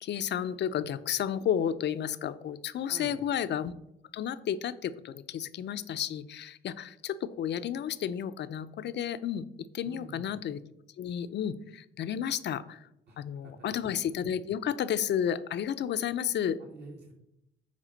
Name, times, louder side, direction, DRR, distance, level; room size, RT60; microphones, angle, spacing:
voice 1, 0.0-3.7 4.1-10.6 11.0-12.9 13.2-16.6, left 9 dB, 60° left, 13 dB, 0.6 m, -32 dB
voice 2, 2.9-3.3 9.8-10.3 13.1-13.8 16.6-17.1, right 3 dB, 55° right, 0 dB, 2.6 m, -48 dB
9.2 x 3.6 x 6.4 m, 0.82 s
cardioid pair, 90°, 20 cm